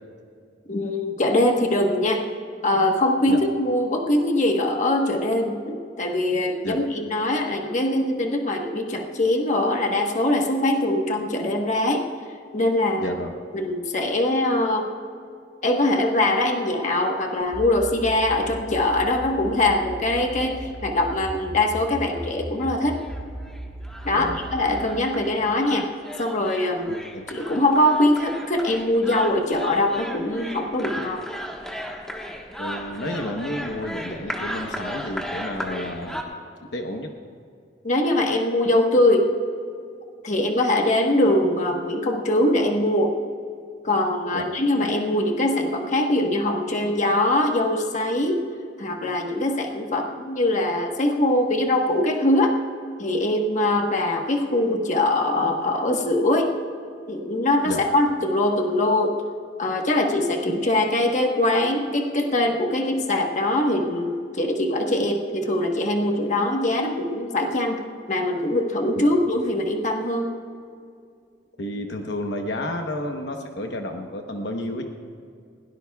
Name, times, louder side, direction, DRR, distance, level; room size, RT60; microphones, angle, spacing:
voice 1, 0.7-2.2 2.6-12.1 12.5-13.2 13.5-14.9 15.6-23.0 24.0-25.9 26.2-26.9 27.3-31.2 37.8-39.3 40.2-43.2 43.8-48.4 48.8-52.5 53.0-56.5 57.1-59.2 59.6-67.8 68.1-70.3, left 1 dB, 45° left, 2 dB, 1.2 m, -22 dB
voice 2, 13.0-13.3 24.1-24.4 25.3-25.5 26.9-27.2 31.0-31.1 32.6-36.3 36.7-37.1 44.3-44.5 57.6-57.8 68.9-69.1 71.6-74.9, left 1 dB, 65° left, 3 dB, 1.0 m, -31 dB
sound 1, 17.4-24.8, right 1 dB, 75° right, 3.9 m, -36 dB
sound 2, 20.7-20.8 21.2-21.3 21.6-21.7 22.1-22.3 22.6-36.2, equal, 5° left, 1.3 m, -36 dB
21.0 x 17.5 x 2.3 m, 2.3 s
head